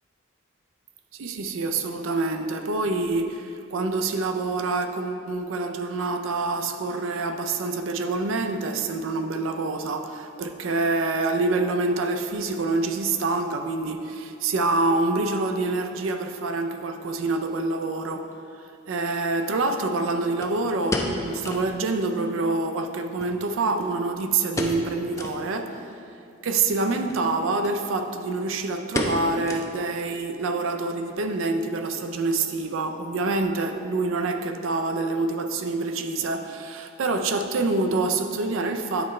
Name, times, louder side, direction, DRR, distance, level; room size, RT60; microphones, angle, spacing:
voice 1, 1.1-18.3 18.9-25.9 26.4-39.1, right 3 dB, 80° right, 6 dB, 0.4 m, -26 dB
sound 1, 18.3-18.4 20.4-21.8 22.1-22.2 22.5-22.6 23.2-24.1 24.5-24.9 25.1-25.4 25.9-26.0 27.0-27.2 27.6-27.8 28.0-28.4 28.9-30.0 30.3-30.4 31.0-31.3 31.6-31.7, left 1 dB, 15° left, 0.4 m, -31 dB
8.7 x 3.2 x 4.3 m, 2.6 s
head